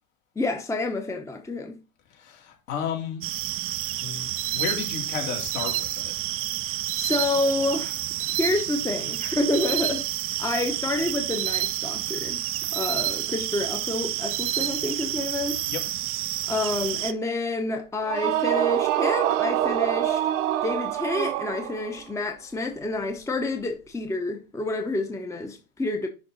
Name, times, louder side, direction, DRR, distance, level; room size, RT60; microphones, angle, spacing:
voice 1, 0.4-1.8 7.0-8.0 8.3-12.4 12.7-15.7 16.5-20.2 20.6-26.1, left 2 dB, 5° left, 0.9 m, -28 dB
voice 2, 2.1-3.3 4.0-6.1 15.7-15.8, left 7 dB, 60° left, 3.0 m, -33 dB
sound 1, 3.2-17.1, right 14 dB, 30° right, 0.6 m, -29 dB
sound 2, 18.0-22.0, right 12 dB, 55° right, 1.0 m, -25 dB
10.5 x 3.7 x 4.0 m
hypercardioid pair, 95°, 44 cm